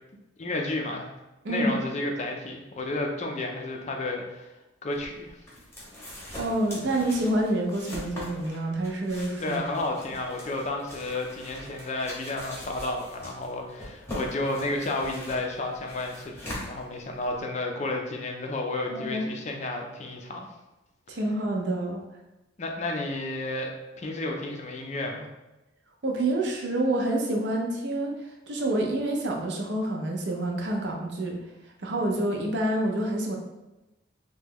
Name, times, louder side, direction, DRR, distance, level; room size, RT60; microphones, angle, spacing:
voice 1, 0.4-1.1 1.5-4.5 4.8-5.4 9.4-20.5 22.6-23.7 24.0-25.3, left 2 dB, 35° left, 2 dB, 0.4 m, -31 dB
voice 2, 1.4-1.8 6.4-9.6 18.9-19.2 21.1-22.0 26.0-28.1 28.5-31.4 31.8-33.4, right 1 dB, 60° right, 1 dB, 0.5 m, -27 dB
sound 1, 4.9-17.4, left 1 dB, 15° left, 0.8 m, -42 dB
3.0 x 2.2 x 3.5 m, 1.0 s
head